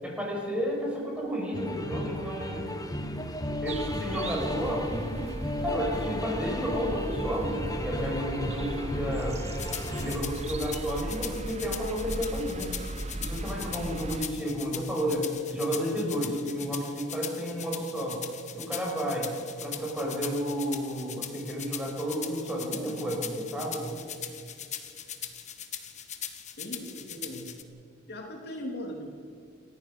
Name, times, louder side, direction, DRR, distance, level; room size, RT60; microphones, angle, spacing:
voice 1, 0.0-2.6 3.6-4.8 5.6-9.4 10.0-12.7 13.2-18.2 18.6-19.3 19.6-23.9, equal, 5° right, -2 dB, 6.5 m, -31 dB
sound 1, 1.5-10.2, left 1 dB, 20° left, 1.4 m, -34 dB
sound 2, 3.7-14.3, right 2 dB, 35° right, 0.9 m, -38 dB
sound 3, 9.6-27.6, left 9 dB, 35° left, 1.6 m, -40 dB
voice 2, 26.6-27.5 28.1-29.2, equal, 55° left, 1 dB, 3.0 m, -39 dB
28.5 x 14.5 x 6.8 m, 2.3 s
head